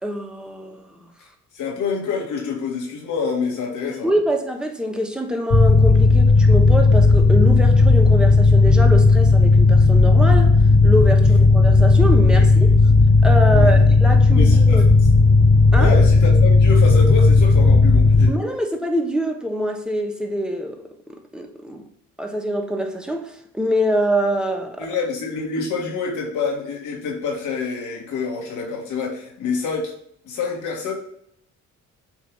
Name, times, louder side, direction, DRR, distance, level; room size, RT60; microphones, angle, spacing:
voice 1, 0.0-1.0 4.0-10.5 10.8-12.7 13.2-14.8 15.7-15.9 18.3-21.8 22.2-24.9, equal, 5° right, 1.1 m, -24 dB
voice 2, 1.5-4.1 12.3-12.4 13.5-13.9 14.3-14.9 15.8-18.3 24.8-29.9 30.2-30.9, left 4 dB, 80° left, 2.0 m, -27 dB
Mechanical fan, 5.5-18.3, left 3 dB, 45° left, 1.8 m, -13 dB
8.1 x 2.8 x 5.3 m
cardioid pair, 90°, 30 cm